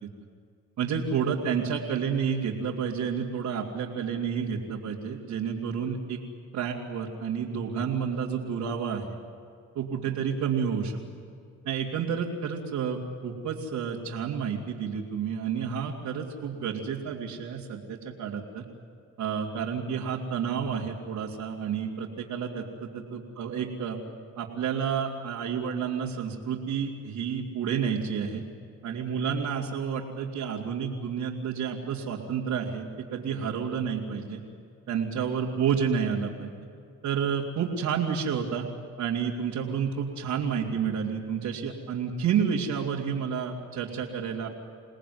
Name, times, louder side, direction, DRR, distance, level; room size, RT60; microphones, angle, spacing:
voice 1, 0.8-6.2 6.5-9.1 9.7-11.0 11.6-18.6 19.2-24.0 24.4-28.4 28.8-34.4 34.9-36.5 37.0-38.7 39.0-44.5, right 7 dB, 75° right, -4 dB, 3.1 m, -30 dB
29.0 x 19.0 x 9.6 m, 2.4 s
cardioid pair, 90°, 30 cm